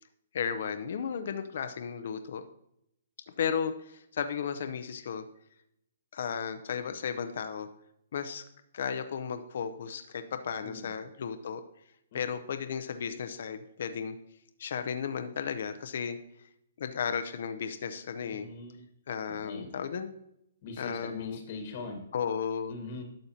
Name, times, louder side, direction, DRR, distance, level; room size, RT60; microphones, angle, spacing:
voice 1, 0.3-2.4 3.4-5.2 6.1-7.7 8.1-8.4 8.7-11.6 12.1-14.2 14.6-16.2 16.8-18.5 19.1-20.1 20.8-21.4 22.1-22.7, left 7 dB, 65° left, 8 dB, 0.6 m, -34 dB
voice 2, 10.6-10.9 12.1-12.2 18.3-18.8 19.3-19.7 20.6-22.0 22.7-23.0, left 4 dB, 45° left, 4 dB, 1.3 m, -41 dB
11.5 x 6.5 x 2.8 m, 0.77 s
hypercardioid pair, 150°, 0 cm